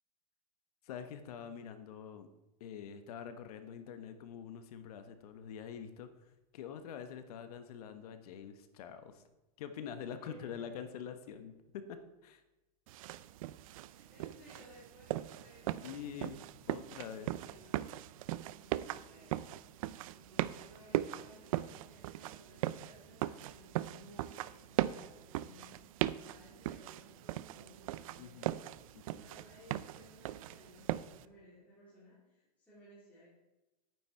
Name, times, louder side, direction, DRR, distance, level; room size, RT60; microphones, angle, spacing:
voice 1, 0.8-2.3 2.6-6.1 6.5-9.2 9.6-12.4 15.8-16.4 16.7-17.3 28.2-28.6 28.9-29.3, left 8 dB, 65° left, 9 dB, 1.2 m, -45 dB
voice 2, 10.2-11.0 13.9-16.4 17.0-17.9 18.5-19.6 20.1-33.3, equal, 5° left, -11 dB, 3.8 m, -60 dB
sound 1, 12.9-31.2, right 14 dB, 60° right, 0.4 m, -39 dB
10.0 x 9.4 x 4.5 m, 1.0 s
supercardioid pair, 170°, 20 cm